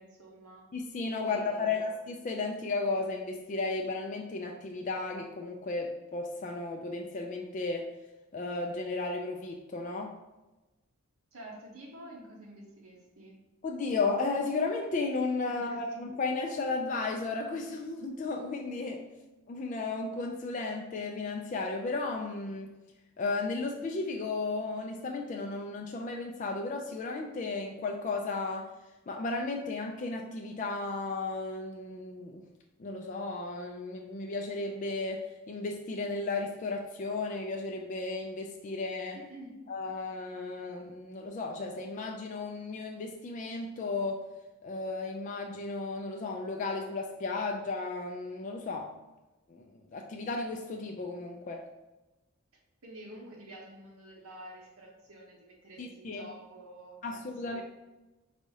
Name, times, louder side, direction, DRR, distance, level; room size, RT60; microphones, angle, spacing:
voice 1, 0.0-0.7 1.2-1.9 11.3-13.4 15.5-15.8 39.1-39.5 52.8-57.2 57.5-57.6, right 1 dB, 85° right, -1 dB, 1.2 m, -49 dB
voice 2, 0.7-7.9 8.3-10.1 13.6-19.0 19.5-22.7 23.2-28.7 29.1-32.4 32.8-39.2 39.7-44.2 44.6-48.9 49.5-51.6 55.8-56.2 57.0-57.6, left 3 dB, 35° left, 2 dB, 0.3 m, -34 dB
4.1 x 2.7 x 4.7 m, 1.1 s
head